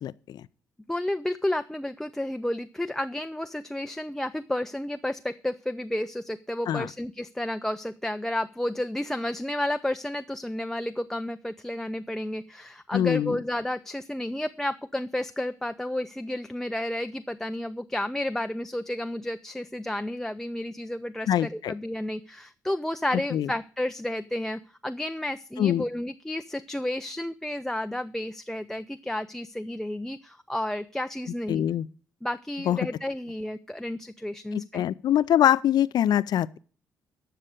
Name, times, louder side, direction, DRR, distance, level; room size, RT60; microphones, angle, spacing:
voice 1, 0.0-0.4 6.7-6.9 12.9-13.4 21.3-21.7 23.3-23.5 25.6-25.8 31.5-31.9 32.7-32.8 34.5-36.6, left 11 dB, 55° left, 0.5 m, -24 dB
voice 2, 0.9-31.6 32.2-34.8, left 1 dB, 5° left, 0.5 m, -31 dB
12.5 x 6.6 x 6.4 m
figure-of-eight pair, 40°, 9 cm